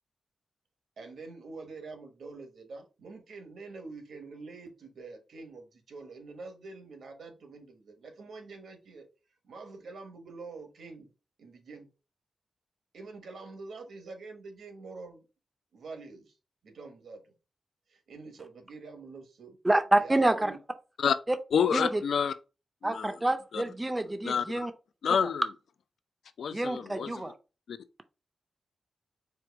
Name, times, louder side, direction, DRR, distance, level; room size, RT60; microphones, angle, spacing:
voice 1, 1.0-9.1 9.4-11.1 11.4-11.9 12.9-15.3 15.7-16.3 16.6-17.3 17.9-19.6 20.0-20.6 21.6-21.7, right 3 dB, 80° right, 1.2 m, -46 dB
voice 2, 19.6-20.6 21.3-21.4 21.7-22.0 22.8-24.7 25.1-25.3 26.5-27.3, right 1 dB, 15° right, 0.4 m, -27 dB
voice 3, 21.5-22.3 22.8-23.1 23.5-23.6 24.2-24.4 25.0-25.4 26.4-27.1 27.7-27.8, left 7 dB, 80° left, 0.4 m, -27 dB
4.6 x 2.5 x 4.6 m
wide cardioid pair, 170°, 0 cm